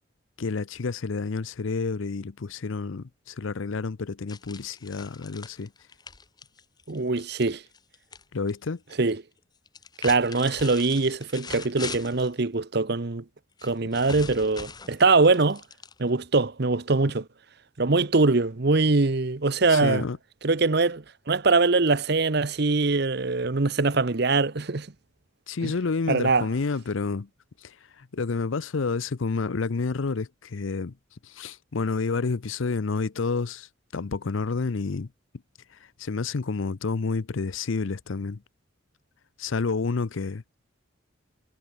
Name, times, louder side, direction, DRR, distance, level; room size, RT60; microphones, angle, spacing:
voice 1, 0.4-5.7 8.3-8.8 19.7-20.2 25.5-27.3 27.6-30.9 31.2-33.7 33.9-35.1 36.0-38.4 39.4-40.4, left 4 dB, 75° left, 0.6 m, -29 dB
sound 1, 4.3-8.2 8.5-9.1 9.7-12.3 13.6-16.3, left 4 dB, 20° left, 1.1 m, -42 dB
voice 2, 6.9-7.6 9.0-9.2 10.0-13.2 13.6-15.6 16.0-17.3 17.8-20.1 20.4-24.9 25.6-25.7 26.1-26.5, right 3 dB, 50° right, 0.9 m, -23 dB
head